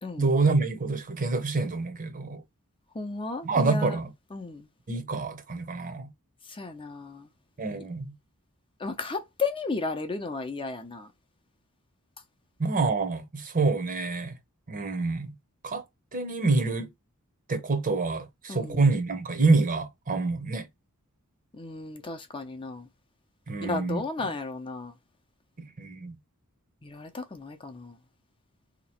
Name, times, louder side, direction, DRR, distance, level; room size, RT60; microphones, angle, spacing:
voice 1, 0.2-2.4 3.4-4.1 4.9-6.1 7.6-8.1 12.6-14.3 14.7-15.3 15.6-15.8 16.1-16.9 17.5-20.7 23.5-24.3 25.6-26.2, right 3 dB, 40° right, 0.8 m, -27 dB
voice 2, 2.9-4.0 4.3-4.7 6.5-7.3 8.8-11.1 18.5-18.8 21.5-22.9 23.6-24.9 26.8-27.9, left 3 dB, 25° left, 0.6 m, -34 dB
2.9 x 2.5 x 4.3 m
head